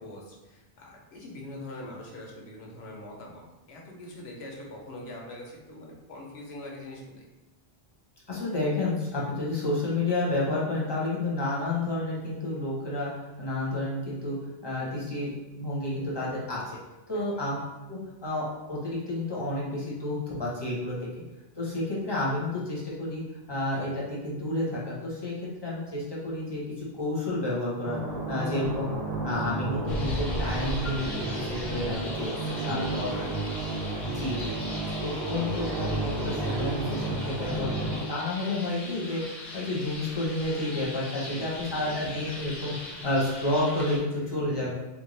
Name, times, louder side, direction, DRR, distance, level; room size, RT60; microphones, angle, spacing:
voice 1, 0.0-7.3 14.6-14.9 17.1-17.4 28.5-28.6 32.3-33.3 33.5-33.7 34.7-35.3 41.2-41.9 42.7-43.0 44.1-44.3, left 1 dB, 80° left, -2 dB, 1.0 m, -43 dB
voice 2, 8.3-14.4 14.6-16.8 17.1-17.6 17.9-21.1 21.6-23.2 23.5-25.3 25.6-28.0 28.3-28.8 29.2-32.3 32.7-33.1 34.0-34.6 35.0-39.2 39.5-42.7 43.0-44.7, left 2 dB, 25° left, -7 dB, 0.9 m, -30 dB
sound 1, 27.8-38.0, right 2 dB, 85° right, 1.1 m, -32 dB
sound 2, 29.9-44.0, left 1 dB, 50° left, 0.8 m, -39 dB
3.3 x 2.5 x 3.2 m, 1.0 s
omnidirectional pair, 1.1 m